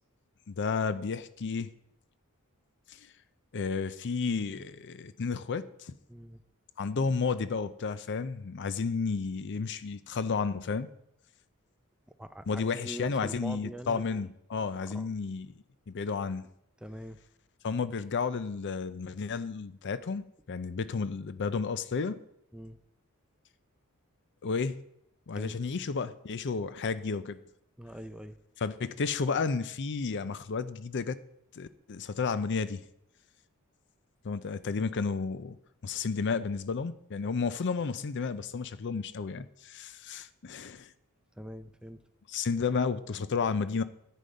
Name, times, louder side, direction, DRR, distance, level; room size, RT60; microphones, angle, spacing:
voice 1, 0.5-1.7 2.9-3.0 3.5-5.9 6.8-10.9 12.5-15.5 15.9-16.5 17.6-22.2 24.4-24.8 25.3-27.4 28.6-31.2 31.5-32.8 34.2-35.6 35.8-40.9 42.3-43.8, left 5 dB, 55° left, 14 dB, 0.5 m, -32 dB
voice 2, 6.1-6.4 12.2-14.2 14.9-15.1 16.8-17.2 22.5-22.8 25.4-25.5 27.8-28.4 41.4-42.0, right 1 dB, 5° right, 10 dB, 0.4 m, -43 dB
10.5 x 9.3 x 5.2 m, 0.77 s
head